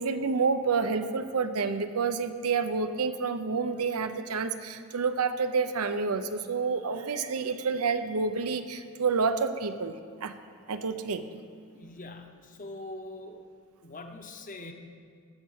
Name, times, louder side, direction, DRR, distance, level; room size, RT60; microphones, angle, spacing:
voice 1, 0.0-9.9 10.2-10.3 10.7-11.4, right 5 dB, 85° right, 9 dB, 0.7 m, -29 dB
voice 2, 11.7-13.4 13.8-14.7, left 2 dB, 35° left, 5 dB, 0.9 m, -43 dB
14.5 x 6.5 x 6.5 m, 2.2 s
head